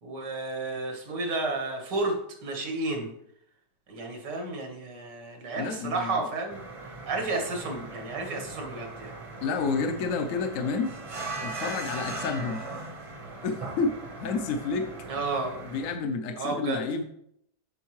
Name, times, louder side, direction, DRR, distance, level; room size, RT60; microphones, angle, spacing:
voice 1, 0.0-2.2 2.4-3.1 3.9-6.6 7.1-9.2 15.1-15.6 16.4-16.8, right 3 dB, 90° right, 2 dB, 2.1 m, -31 dB
voice 2, 5.6-6.2 9.4-10.9 11.4-12.6 13.4-14.9 15.6-17.0, left 4 dB, 65° left, 6 dB, 0.9 m, -30 dB
sound 1, 6.5-16.0, right 3 dB, 30° right, 0.6 m, -39 dB
8.1 x 6.3 x 3.1 m, 0.72 s
omnidirectional pair, 1.8 m